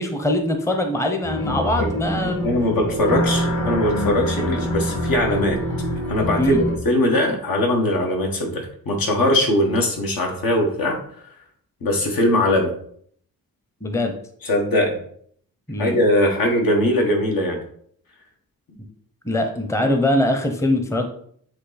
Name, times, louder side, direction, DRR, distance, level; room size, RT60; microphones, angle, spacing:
voice 1, 0.0-2.5 6.4-6.6 13.8-14.1 15.7-16.0 19.3-21.1, left 1 dB, 10° left, 5 dB, 0.6 m, -22 dB
sound 1, 1.2-6.8, equal, 60° left, 2.2 m, -25 dB
voice 2, 2.4-5.6 6.1-11.0 11.8-12.7 14.4-15.0 15.8-17.6, left 1 dB, 80° left, 1 dB, 1.6 m, -20 dB
8.0 x 3.1 x 4.0 m, 0.62 s
wide cardioid pair, 130°, 35 cm